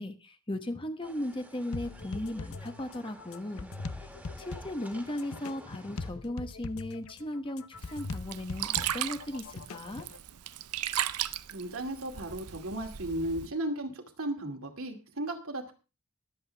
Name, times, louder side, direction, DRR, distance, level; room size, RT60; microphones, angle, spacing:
voice 1, 0.0-3.7 4.4-10.1, left 1 dB, 25° left, 7 dB, 1.2 m, -37 dB
sound 1, 1.0-6.1, right 1 dB, 5° right, 2.1 m, -52 dB
sound 2, 1.7-10.2, left 3 dB, 70° left, 0.8 m, -41 dB
Sink (filling or washing), 7.8-13.5, right 12 dB, 90° right, 0.7 m, -36 dB
voice 2, 11.5-15.7, right 1 dB, 65° right, 3 dB, 2.5 m, -35 dB
22.0 x 8.0 x 3.4 m, 0.32 s
head